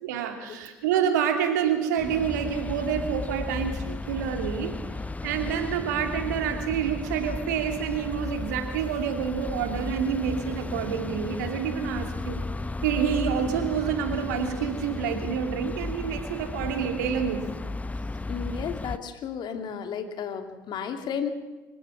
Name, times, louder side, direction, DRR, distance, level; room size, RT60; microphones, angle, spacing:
voice 1, 0.0-4.7 5.2-12.4 12.8-17.5, right 8 dB, 80° right, 5 dB, 2.9 m, -28 dB
sound 1, 2.0-19.0, left 3 dB, 15° left, 0.8 m, -34 dB
voice 2, 18.3-21.3, left 7 dB, 55° left, 7 dB, 2.7 m, -33 dB
26.0 x 16.0 x 7.4 m, 1.2 s
hypercardioid pair, 60°, 9 cm